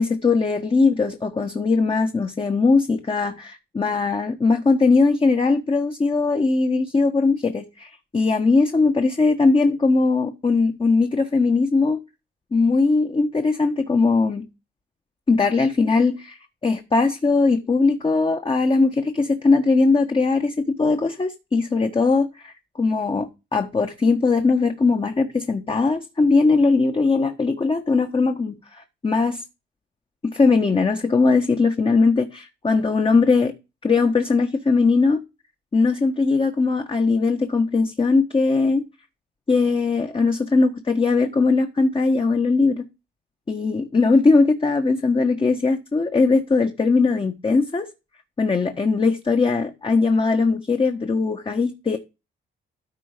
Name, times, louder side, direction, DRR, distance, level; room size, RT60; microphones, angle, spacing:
voice 1, 0.0-12.0 12.5-14.5 15.3-29.4 30.3-33.5 33.8-35.2 35.7-38.8 39.5-42.8 43.5-47.9 48.4-52.0, left 4 dB, 25° left, 1.4 m, -20 dB
13.5 x 4.7 x 5.1 m
cardioid pair, 90°, 20 cm